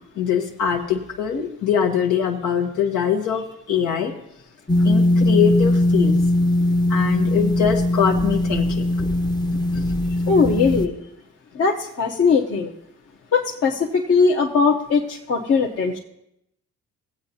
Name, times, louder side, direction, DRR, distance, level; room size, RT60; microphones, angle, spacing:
voice 1, 0.1-4.1 4.8-6.2 6.9-8.8, left 8 dB, 80° left, 3 dB, 1.3 m, -22 dB
sound 1, 4.7-10.9, left 1 dB, 15° left, 0.7 m, -20 dB
voice 2, 10.3-10.9 11.5-12.7 13.3-16.0, left 5 dB, 50° left, -3 dB, 1.0 m, -20 dB
17.5 x 8.0 x 2.8 m, 0.81 s
cardioid pair, 90°, 30 cm